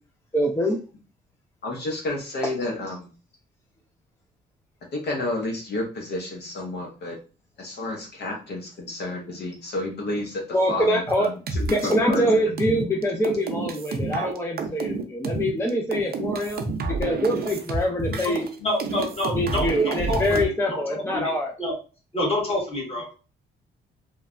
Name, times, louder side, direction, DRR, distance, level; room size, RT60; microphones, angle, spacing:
voice 1, 0.3-0.8 7.7-7.8 10.5-11.3 11.7-18.5 19.3-21.5, equal, 10° left, 0 dB, 0.5 m, -24 dB
voice 2, 1.6-3.1 4.9-7.2 7.6-10.4 10.7-11.3 11.6-12.2, left 2 dB, 55° left, -1 dB, 0.8 m, -30 dB
sound 1, 11.1-18.5 18.8-20.4, right 4 dB, 50° right, 0.5 m, -29 dB
voice 3, 18.6-21.3 21.6-21.7 22.1-23.1, left 1 dB, 30° left, -2 dB, 1.4 m, -28 dB
3.1 x 2.2 x 2.5 m, 0.36 s
cardioid pair, 90°, 20 cm